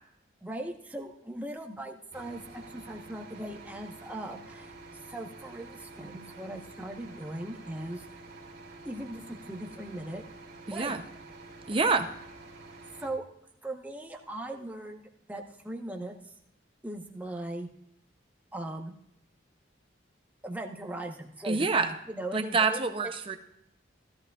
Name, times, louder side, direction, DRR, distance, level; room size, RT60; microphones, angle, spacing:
voice 1, 0.4-8.2 8.8-10.2 10.7-10.9 13.0-13.3 13.6-16.3 16.8-17.7 18.5-18.9 20.4-23.1, right 1 dB, 10° right, 2 dB, 1.0 m, -39 dB
sound 1, 2.1-13.1, right 2 dB, 50° right, 2.9 m, -48 dB
voice 2, 10.7-11.0 11.7-12.1 21.4-21.9 22.3-23.4, right 4 dB, 25° right, 8 dB, 0.6 m, -27 dB
16.0 x 13.5 x 2.4 m, 0.79 s
head